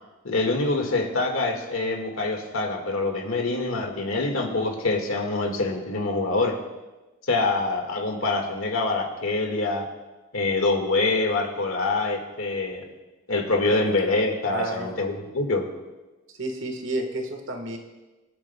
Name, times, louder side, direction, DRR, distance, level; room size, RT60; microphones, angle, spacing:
voice 1, 0.2-6.6 7.3-9.9 10.3-12.9 13.3-15.7, left 3 dB, 80° left, 3 dB, 1.8 m, -25 dB
voice 2, 14.5-14.9 16.4-17.8, right 2 dB, 70° right, 5 dB, 1.4 m, -30 dB
25.5 x 8.6 x 2.2 m, 1.1 s
head